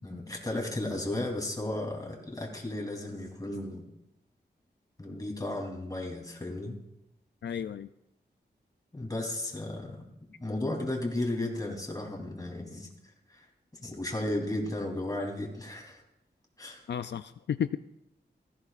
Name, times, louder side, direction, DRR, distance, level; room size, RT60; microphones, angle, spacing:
voice 1, 0.0-3.8 5.0-6.8 8.9-10.0 10.4-12.9 13.3-13.5 13.8-16.0 16.6-16.8, left 1 dB, 20° left, 0 dB, 3.2 m, -34 dB
voice 2, 7.4-7.9 16.9-17.8, left 8 dB, 80° left, 11 dB, 0.4 m, -32 dB
17.5 x 15.0 x 2.5 m, 0.85 s
wide cardioid pair, 80°, 18 cm